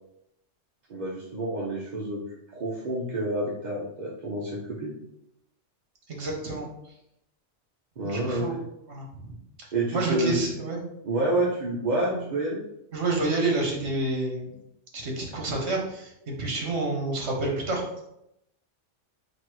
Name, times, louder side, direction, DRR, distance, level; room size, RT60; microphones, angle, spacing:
voice 1, 0.9-2.2 2.5-4.9 8.0-8.6 9.7-10.4 11.0-12.6, right 1 dB, 45° right, -4 dB, 0.7 m, -28 dB
voice 2, 6.1-6.7 8.0-8.6 8.9-9.4 9.9-10.8 12.1-12.2 12.9-14.5 14.9-18.0, right 2 dB, 65° right, -1 dB, 1.5 m, -29 dB
4.0 x 2.5 x 4.6 m, 0.82 s
omnidirectional pair, 1.2 m